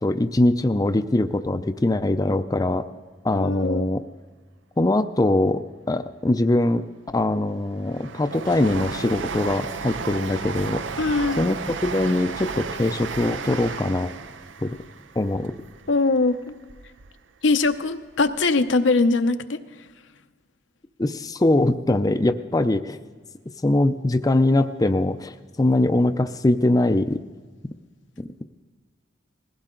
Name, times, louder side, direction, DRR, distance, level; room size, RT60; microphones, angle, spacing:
voice 1, 0.0-2.9 3.2-4.0 4.8-5.6 5.9-6.8 7.1-10.8 11.4-14.1 14.6-14.7 15.2-15.5 21.0-23.0 23.6-27.2 28.2-28.4, left 2 dB, 20° left, 8 dB, 0.5 m, -22 dB
voice 2, 3.3-3.9 11.0-11.4 15.9-16.5 17.4-19.6, left 3 dB, 85° left, 8 dB, 0.8 m, -21 dB
Train, 6.9-17.1 17.5-18.4 18.7-18.8, right 5 dB, 85° right, 0.7 m, -34 dB
20.0 x 16.0 x 3.8 m, 1.4 s
head